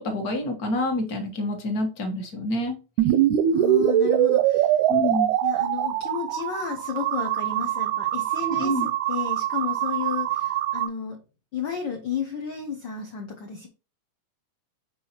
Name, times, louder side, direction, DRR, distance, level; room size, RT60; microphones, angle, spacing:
voice 1, 0.0-2.8 4.9-5.3 8.4-8.9, left 1 dB, 45° left, 3 dB, 1.3 m, -27 dB
sound 1, 3.0-10.9, right 12 dB, 85° right, 2.0 m, -23 dB
voice 2, 3.5-4.8 5.4-11.2 11.5-13.7, left 7 dB, 90° left, 4 dB, 1.0 m, -32 dB
7.4 x 4.6 x 2.9 m, 0.32 s
omnidirectional pair, 3.3 m